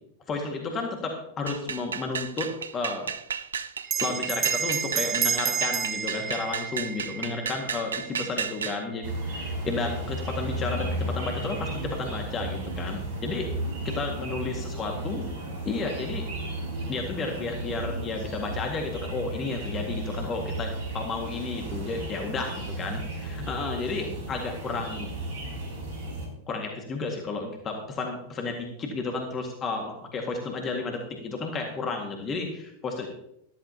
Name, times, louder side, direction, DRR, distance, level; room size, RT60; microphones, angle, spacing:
voice 1, 0.3-3.1 4.0-13.5 13.8-15.3 15.7-16.3 16.9-25.1 26.5-33.1, left 3 dB, 25° left, 2 dB, 1.8 m, -32 dB
sound 1, 1.5-8.8, right 7 dB, 70° right, 0.5 m, -33 dB
Bell, 3.8-8.7, right 7 dB, 25° right, 0.6 m, -30 dB
sound 2, 9.0-26.3, right 1 dB, 55° right, 4.6 m, -34 dB
13.5 x 13.5 x 2.8 m, 0.78 s
figure-of-eight pair, 90°, 0 cm